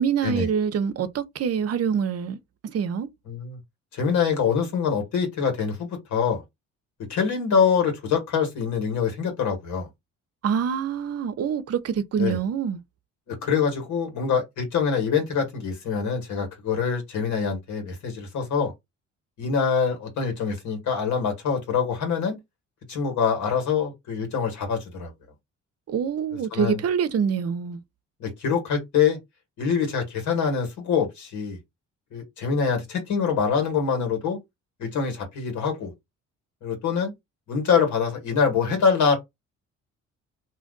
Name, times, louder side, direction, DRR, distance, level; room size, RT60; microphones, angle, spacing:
voice 1, 0.0-2.4 2.6-3.1 10.4-12.8 25.9-27.8, right 7 dB, 55° right, 0.6 m, -25 dB
voice 2, 3.3-3.6 3.9-6.4 7.1-9.9 12.2-12.4 13.3-18.7 19.4-22.4 22.9-25.1 26.5-26.8 28.2-29.2 29.6-31.6 32.1-34.4 34.8-35.9 36.6-37.1 37.5-39.2, left 6 dB, 75° left, 1.7 m, -24 dB
2.7 x 2.4 x 3.8 m
cardioid pair, 90°, 30 cm